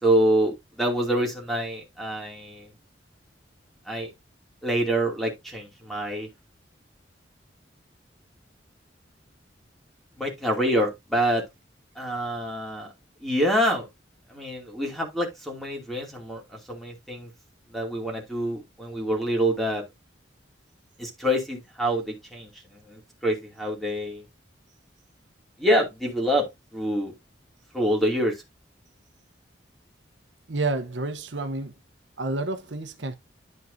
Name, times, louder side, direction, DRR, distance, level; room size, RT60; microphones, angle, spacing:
voice 1, 0.0-2.7 3.9-4.1 4.6-6.3 10.2-11.4 12.0-12.9 13.2-13.9 14.3-17.3 17.7-19.8 21.0-24.2 25.6-26.5 26.7-27.1 27.7-28.3, equal, ahead, 2.7 m, -26 dB
voice 2, 30.5-31.7 32.2-33.2, right 2 dB, 85° right, 0.9 m, -29 dB
11.0 x 5.4 x 2.7 m
head